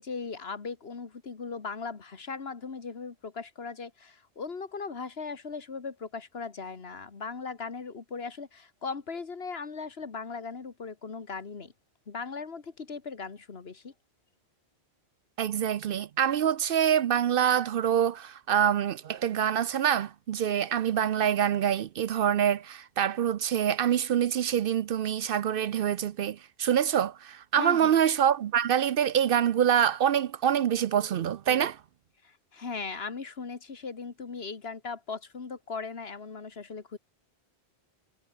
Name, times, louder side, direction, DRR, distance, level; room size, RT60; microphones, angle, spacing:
voice 1, 0.0-11.7 12.1-13.9 27.6-28.0 32.2-37.0, left 4 dB, 65° left, 1.9 m, -38 dB
voice 2, 15.4-31.8, right 9 dB, 65° right, 0.7 m, -25 dB
omnidirectional pair, 1.1 m